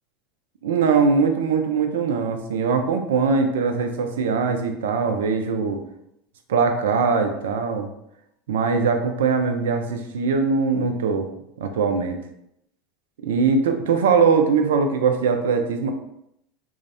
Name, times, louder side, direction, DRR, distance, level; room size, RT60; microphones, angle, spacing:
voice 1, 0.6-5.8 6.5-7.9 8.5-11.3 11.6-12.2 13.2-15.9, right 5 dB, 70° right, 5 dB, 0.3 m, -21 dB
2.5 x 2.0 x 2.5 m, 0.78 s
hypercardioid pair, 80°, 0 cm